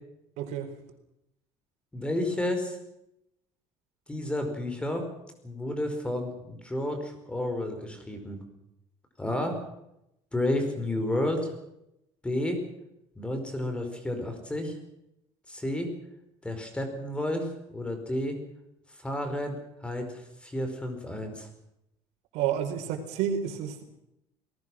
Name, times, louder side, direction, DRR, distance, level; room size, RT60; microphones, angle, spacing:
voice 1, 0.4-0.7 22.3-23.8, right 9 dB, 85° right, 6 dB, 4.3 m, -30 dB
voice 2, 1.9-2.8 4.1-5.0 5.4-8.4 9.2-9.6 10.3-11.5 12.2-12.6 13.2-14.7 15.5-15.9 16.4-18.4 19.0-21.5, left 1 dB, 10° left, 6 dB, 4.8 m, -31 dB
28.0 x 19.5 x 6.3 m, 0.83 s
cardioid pair, 150°, 11 cm